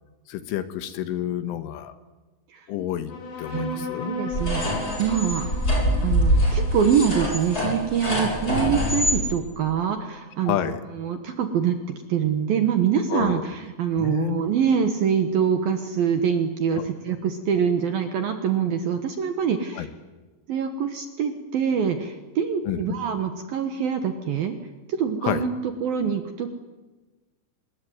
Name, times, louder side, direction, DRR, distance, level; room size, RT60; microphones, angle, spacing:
voice 1, 0.3-1.9 2.7-3.1 3.4-4.1 10.4-10.8 13.1-13.5 13.9-14.4 16.7-17.2 19.7-19.9 22.7-22.8 25.2-25.5, left 11 dB, 75° left, 11 dB, 3.6 m, -29 dB
sound 1, 3.1-10.0, left 2 dB, 55° left, 6.0 m, -36 dB
voice 2, 3.5-5.5 6.0-10.6 10.9-11.8 12.1-19.9 20.5-24.5 24.9-25.5 25.8-26.5, right 7 dB, 65° right, 7 dB, 2.4 m, -25 dB
sound 2, 4.3-9.2, equal, 15° left, 7.6 m, -24 dB
26.0 x 20.5 x 9.6 m, 1.2 s
omnidirectional pair, 6.0 m